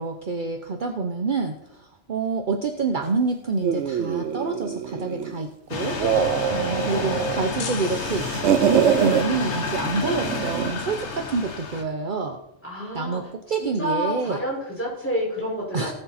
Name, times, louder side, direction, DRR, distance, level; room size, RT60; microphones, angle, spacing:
voice 1, 0.0-6.0 6.5-12.4 12.9-13.2 13.5-14.4 15.7-15.9, right 4 dB, 50° right, 4 dB, 1.0 m, -27 dB
sound 1, 3.6-5.4 5.8-7.5 7.8-9.2 10.0-10.8, right 8 dB, 80° right, 1.0 m, -24 dB
sound 2, 5.7-11.8, left 4 dB, 85° left, 1.5 m, -30 dB
voice 2, 6.7-7.3 12.6-13.2 13.5-15.9, equal, 10° left, -5 dB, 5.4 m, -29 dB
sound 3, 7.6-8.9, left 6 dB, 50° left, 0.9 m, -38 dB
18.5 x 6.9 x 4.3 m, 0.82 s
omnidirectional pair, 1.1 m